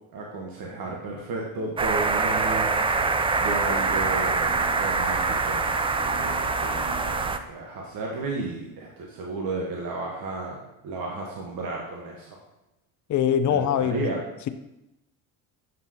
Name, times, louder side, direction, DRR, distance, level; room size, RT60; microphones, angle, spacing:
voice 1, 0.1-3.0 3.4-5.6 6.2-12.4 13.5-14.2, right 3 dB, 55° right, -1 dB, 1.3 m, -33 dB
sound 1, 1.5-2.5 2.8-2.9 3.7-5.0 6.0-8.0, right 1 dB, 10° left, 1.0 m, -44 dB
sound 2, 1.8-7.4, right 4 dB, 15° right, 0.3 m, -24 dB
sound 3, 2.2-7.3, left 7 dB, 75° left, 1.3 m, -39 dB
voice 2, 13.1-14.1, left 9 dB, 45° left, 11 dB, 0.6 m, -22 dB
7.4 x 5.3 x 2.9 m, 0.91 s
hypercardioid pair, 65°, 42 cm